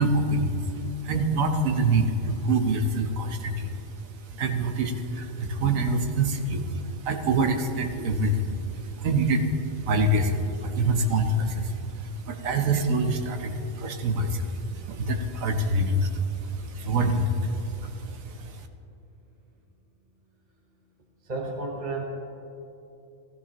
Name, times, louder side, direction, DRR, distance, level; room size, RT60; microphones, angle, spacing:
voice 1, 0.0-3.8 4.3-18.6, right 2 dB, 90° right, 6 dB, 1.3 m, -26 dB
voice 2, 21.2-22.0, right 3 dB, 35° right, -1 dB, 1.0 m, -32 dB
15.5 x 13.5 x 2.9 m, 2.9 s
omnidirectional pair, 1.4 m